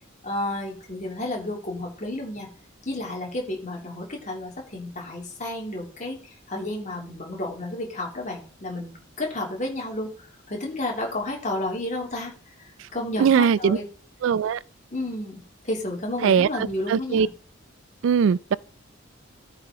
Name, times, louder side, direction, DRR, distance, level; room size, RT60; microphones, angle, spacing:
voice 1, 0.2-2.5 2.8-13.8 14.9-17.3, left 1 dB, 40° left, 3.0 m, -32 dB
voice 2, 13.2-13.8 14.2-14.6 16.2-16.5 16.9-17.3 18.0-18.6, right 7 dB, 70° right, 0.3 m, -20 dB
14.0 x 4.9 x 3.8 m
head